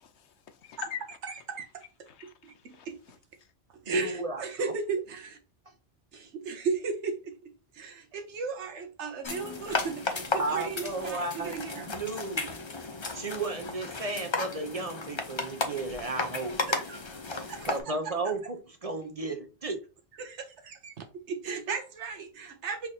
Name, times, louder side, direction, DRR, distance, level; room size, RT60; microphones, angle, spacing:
voice 1, 0.2-1.2 2.1-3.5, left 8 dB, 75° left, 1.0 m, -43 dB
voice 2, 1.2-1.8 2.4-3.0 3.8-5.4 6.1-11.9 16.7-17.0 17.3-17.8 18.0-18.3 20.2-22.9, right 5 dB, 90° right, 1.1 m, -36 dB
voice 3, 3.9-4.7 10.4-11.5 11.8-12.9 13.1-16.6 17.6-18.6 18.8-19.8, right 3 dB, 40° right, 0.7 m, -33 dB
sound 1, 9.2-17.8, left 3 dB, 30° left, 0.6 m, -34 dB
6.0 x 3.3 x 2.7 m
omnidirectional pair, 1.2 m